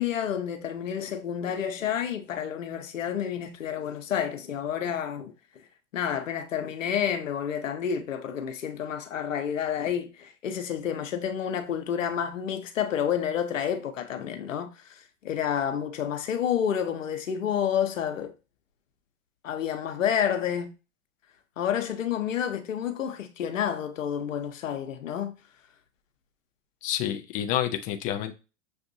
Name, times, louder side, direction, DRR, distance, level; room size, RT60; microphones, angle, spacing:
voice 1, 0.0-5.3 5.9-18.3 19.4-20.7 21.6-25.3, left 8 dB, 85° left, 0.9 m, -29 dB
voice 2, 26.8-28.3, left 11 dB, 25° left, 0.3 m, -29 dB
6.9 x 2.6 x 2.6 m
hypercardioid pair, 115°, 38 cm